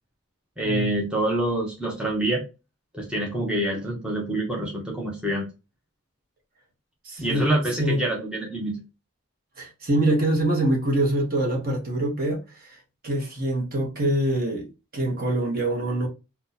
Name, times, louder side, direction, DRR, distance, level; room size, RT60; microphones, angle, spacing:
voice 1, 0.6-2.4 2.9-5.5 7.2-8.8, right 1 dB, 5° right, 0.6 m, -26 dB
voice 2, 7.0-7.5 7.8-8.0 9.6-12.8 13.0-16.1, right 1 dB, 40° right, 1.0 m, -25 dB
2.7 x 2.3 x 3.9 m
head